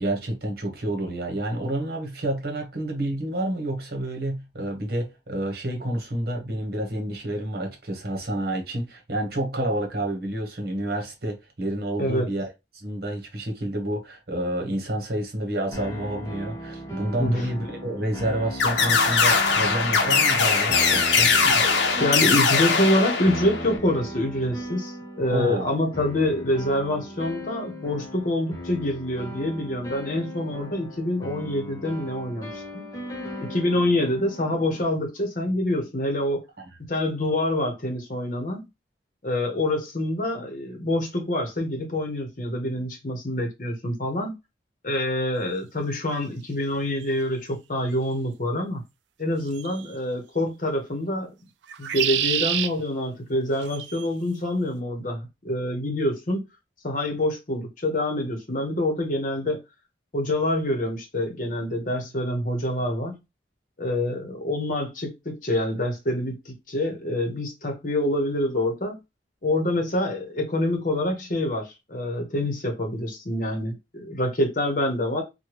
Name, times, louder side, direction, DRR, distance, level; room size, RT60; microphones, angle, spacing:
voice 1, 0.0-21.3 25.3-25.7 36.6-36.7, right 1 dB, 55° right, 1.0 m, -29 dB
sound 1, 15.7-35.0, equal, 20° left, 0.6 m, -38 dB
sound 2, 18.6-23.8, left 5 dB, 85° left, 0.7 m, -21 dB
voice 2, 22.0-32.8 33.4-36.4 36.8-38.7 39.2-44.4 44.8-48.8 49.2-51.3 51.8-56.4 56.8-59.6 60.1-63.2 63.8-69.0 69.4-75.2, left 1 dB, 45° left, 0.9 m, -26 dB
sound 3, 47.0-47.1 49.6-49.9 51.7-52.7 53.6-54.1, right 11 dB, 85° right, 0.3 m, -27 dB
3.2 x 2.2 x 2.9 m
head